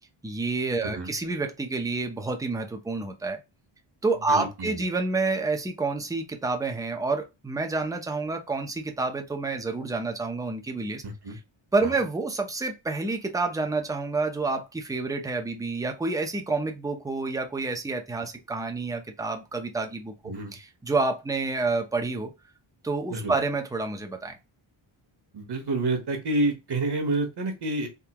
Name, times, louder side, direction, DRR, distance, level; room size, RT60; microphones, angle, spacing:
voice 1, 0.2-3.4 4.0-11.0 11.3-11.4 11.7-22.3 22.8-24.4, right 3 dB, 5° right, 0.6 m, -29 dB
voice 2, 4.3-4.8 11.0-11.4 11.8-11.9 20.2-20.5 23.1-23.3 25.3-27.9, right 2 dB, 55° right, 1.2 m, -28 dB
3.7 x 2.7 x 2.9 m
wide cardioid pair, 130°, 49 cm